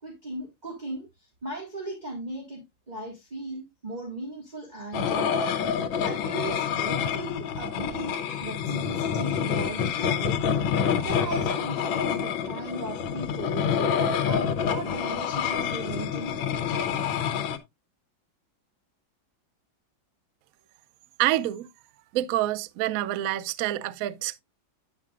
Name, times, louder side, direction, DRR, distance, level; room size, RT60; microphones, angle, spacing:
voice 1, 0.0-5.6 6.0-10.4 11.0-16.4, right 1 dB, 20° right, 1.9 m, -37 dB
sound 1, 4.9-17.6, left 7 dB, 80° left, 1.6 m, -27 dB
voice 2, 21.2-21.7 22.1-24.4, right 14 dB, 80° right, 0.7 m, -27 dB
9.3 x 8.3 x 2.4 m
omnidirectional pair, 2.1 m